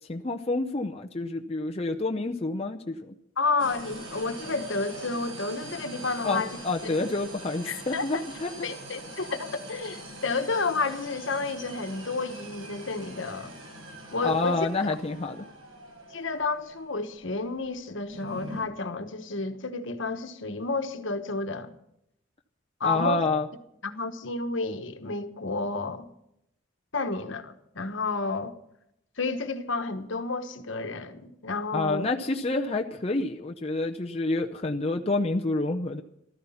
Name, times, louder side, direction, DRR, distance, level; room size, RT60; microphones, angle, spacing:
voice 1, 0.1-3.1 6.2-8.7 14.2-15.5 22.8-23.5 31.7-36.0, left 2 dB, 30° left, 0.7 m, -28 dB
voice 2, 3.4-6.9 7.7-8.2 8.6-13.5 14.1-14.6 16.1-21.7 22.8-23.2 23.8-26.1 26.9-28.5 29.2-32.0, left 3 dB, 65° left, 1.3 m, -31 dB
sound 1, 3.6-18.6, right 1 dB, 80° right, 5.9 m, -43 dB
14.5 x 13.5 x 5.7 m
head